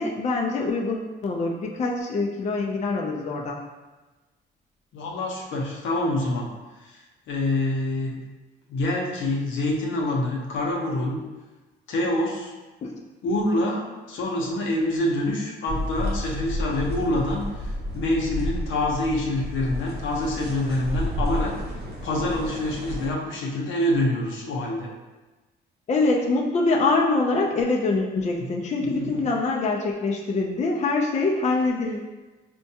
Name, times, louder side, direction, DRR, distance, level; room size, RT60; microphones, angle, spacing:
voice 1, 0.0-3.6 12.8-13.0 25.9-32.2, left 3 dB, 35° left, 0 dB, 0.4 m, -24 dB
voice 2, 4.9-6.5 6.8-8.2 8.7-11.2 11.9-12.5 13.2-21.5 22.0-24.9 28.4-28.5 28.8-29.2, left 1 dB, 75° left, -1 dB, 0.7 m, -26 dB
sound 1, 15.7-23.1, equal, 55° right, 0.7 m, -31 dB
4.3 x 2.2 x 2.8 m, 1.2 s
cardioid pair, 90°, 20 cm